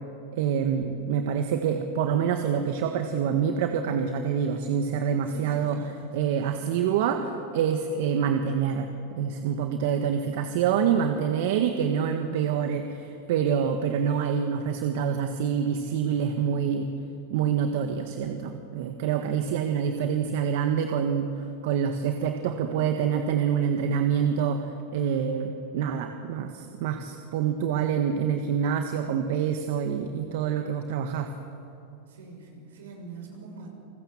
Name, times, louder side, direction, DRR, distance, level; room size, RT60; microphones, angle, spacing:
voice 1, 0.3-5.8 6.1-8.9 9.1-16.9 17.3-21.3 21.6-31.3, right 7 dB, 65° right, 6 dB, 1.6 m, -26 dB
voice 2, 5.2-6.2 32.1-33.7, right 4 dB, 85° right, 2 dB, 6.3 m, -43 dB
30.0 x 20.0 x 7.4 m, 2.8 s
hypercardioid pair, 115°, 0 cm